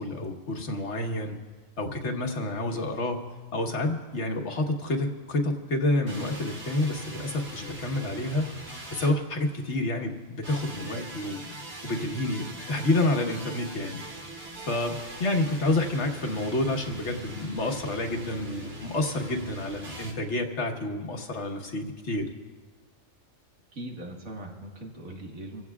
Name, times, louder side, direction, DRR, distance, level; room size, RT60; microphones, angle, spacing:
voice 1, 0.0-1.4 1.8-3.2 3.5-8.5 8.9-11.4 11.8-14.0 14.6-22.2, left 2 dB, 55° left, 2 dB, 1.6 m, -29 dB
sound 1, 6.1-9.8 10.4-20.1, right 1 dB, 50° right, 2.2 m, -42 dB
voice 2, 23.7-25.6, right 1 dB, 75° right, 0 dB, 2.2 m, -40 dB
26.0 x 16.0 x 2.4 m, 1.4 s
omnidirectional pair, 1.4 m